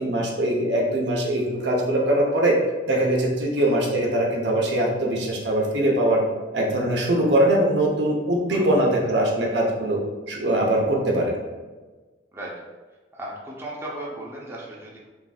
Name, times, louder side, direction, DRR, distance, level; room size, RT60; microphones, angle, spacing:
voice 1, 0.0-2.6 2.8-6.2 6.5-10.0 10.3-11.4, right 1 dB, 70° right, -1 dB, 0.8 m, -22 dB
voice 2, 8.5-9.1 12.3-12.5 13.1-15.0, right 1 dB, 15° right, -5 dB, 0.7 m, -36 dB
5.6 x 2.7 x 2.3 m, 1.3 s
head